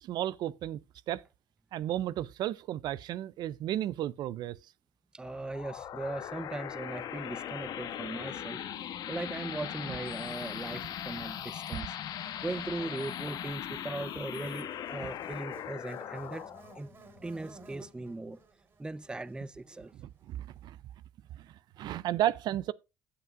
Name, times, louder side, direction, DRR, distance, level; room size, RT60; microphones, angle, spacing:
voice 1, 0.0-0.8 1.1-1.2 1.7-4.6 15.0-15.1 19.9-20.8 21.3-22.7, right 12 dB, 65° right, 0.4 m, -33 dB
voice 2, 5.1-11.9 12.4-16.9 17.2-18.4 18.8-19.9, right 2 dB, 10° right, 0.5 m, -39 dB
sound 1, 5.2-18.3, left 10 dB, 65° left, 1.0 m, -40 dB
Buzz, 9.9-20.3, right 3 dB, 35° right, 4.1 m, -57 dB
16.5 x 5.7 x 2.5 m
cardioid pair, 95°, 8 cm